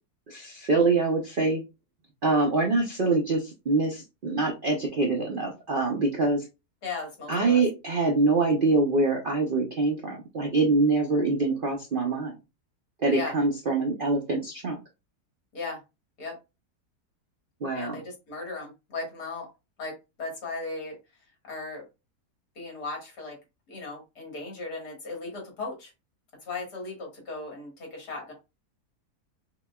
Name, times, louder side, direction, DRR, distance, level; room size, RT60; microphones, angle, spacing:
voice 1, 0.3-1.6 2.2-6.4 7.3-12.3 13.0-14.8 17.6-18.0, right 3 dB, 60° right, 1 dB, 0.5 m, -25 dB
voice 2, 6.8-7.6 13.1-13.3 15.5-15.8 16.2-16.4 17.7-19.5 19.8-21.0 21.5-21.8 22.6-23.4 23.7-25.9 26.4-28.3, left 3 dB, 75° left, 0 dB, 2.2 m, -36 dB
6.0 x 2.2 x 2.2 m, 0.26 s
omnidirectional pair, 1.7 m